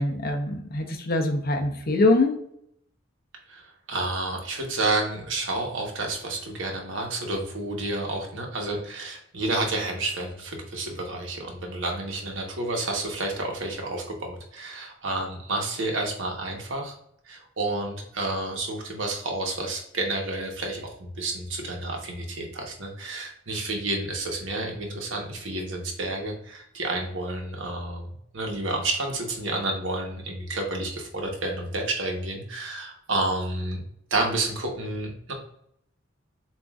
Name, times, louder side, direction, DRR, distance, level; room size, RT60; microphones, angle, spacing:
voice 1, 0.0-2.4, left 2 dB, 50° left, 3 dB, 0.7 m, -23 dB
voice 2, 3.9-16.9 17.3-33.8 34.1-35.3, right 2 dB, 70° right, 1 dB, 1.1 m, -30 dB
7.3 x 2.6 x 2.4 m, 0.72 s
head